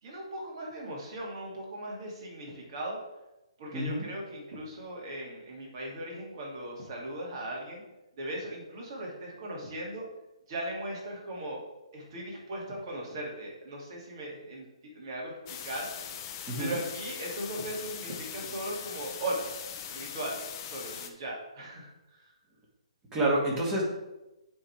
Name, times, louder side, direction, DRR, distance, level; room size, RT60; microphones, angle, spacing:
voice 1, 0.0-3.0 3.6-7.8 8.2-10.1 10.5-11.6 11.9-14.7 14.9-15.9 16.6-19.5 19.9-22.3, right 1 dB, 45° right, -3 dB, 2.7 m, -38 dB
voice 2, 3.7-4.1 16.5-16.7 23.1-23.8, right 1 dB, 15° right, -3 dB, 2.1 m, -28 dB
sound 1, 15.5-21.1, left 8 dB, 35° left, 0.8 m, -41 dB
8.5 x 3.9 x 4.7 m, 0.99 s
figure-of-eight pair, 135°, 3 cm